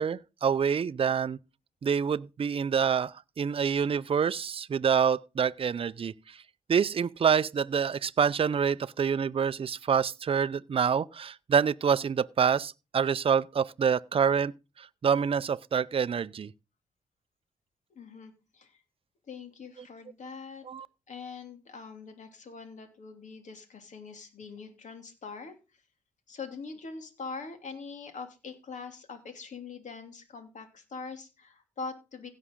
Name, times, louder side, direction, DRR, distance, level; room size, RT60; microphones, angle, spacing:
voice 1, 0.0-1.4 1.8-6.1 6.7-14.5 14.8-16.5 20.7-20.9, right 7 dB, 40° right, 0.5 m, -27 dB
voice 2, 17.9-18.8 19.3-20.6 21.1-25.6 26.3-32.3, left 4 dB, 60° left, 2.9 m, -43 dB
16.5 x 6.3 x 3.8 m
hypercardioid pair, 45°, 14 cm